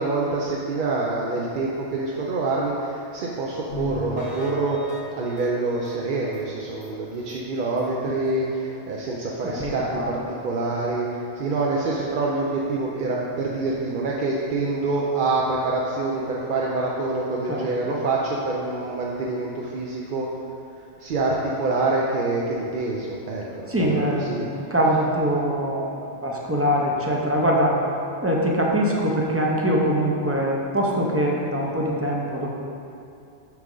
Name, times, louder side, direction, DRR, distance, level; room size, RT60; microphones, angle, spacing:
voice 1, 0.0-20.3 21.0-24.4, right 3 dB, 55° right, -3 dB, 0.6 m, -26 dB
sound 1, 3.7-6.4 6.8-6.9 7.3-7.4 7.8-7.9, left 2 dB, 80° left, 1.2 m, -35 dB
voice 2, 9.4-10.2 17.5-18.0 23.7-27.8 28.2-32.5, equal, 15° right, -3 dB, 0.5 m, -23 dB
6.1 x 5.9 x 3.8 m, 2.6 s
omnidirectional pair, 1.2 m